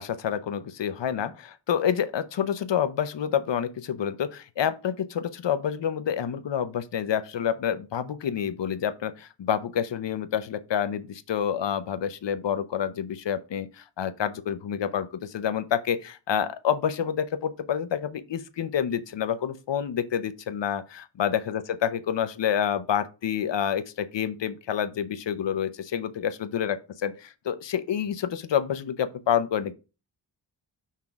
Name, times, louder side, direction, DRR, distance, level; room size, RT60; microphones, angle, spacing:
voice 1, 0.0-27.1 27.4-29.7, left 8 dB, 80° left, 0.7 m, -28 dB
5.8 x 3.7 x 4.5 m
wide cardioid pair, 95°, 42 cm